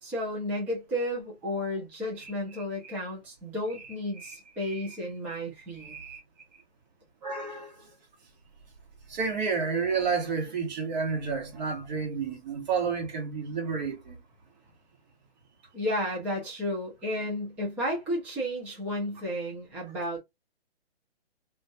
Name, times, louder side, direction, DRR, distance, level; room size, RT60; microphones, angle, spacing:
voice 1, 0.0-6.0 15.7-20.2, equal, 5° right, 0.4 m, -32 dB
voice 2, 1.4-1.7 2.2-2.9 4.2-5.0 5.7-6.2 7.2-7.9 9.1-14.2, right 5 dB, 45° right, 1.2 m, -31 dB
2.5 x 2.3 x 2.5 m
hypercardioid pair, 145°, 31 cm